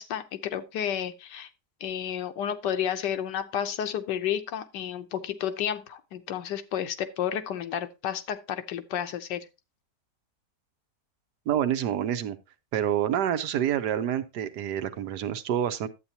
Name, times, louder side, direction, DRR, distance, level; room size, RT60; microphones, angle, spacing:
voice 1, 0.0-1.5 1.8-9.4, left 9 dB, 90° left, 1.5 m, -31 dB
voice 2, 11.5-12.4 12.7-15.9, right 10 dB, 75° right, 1.3 m, -27 dB
11.0 x 8.4 x 2.8 m
omnidirectional pair, 1.8 m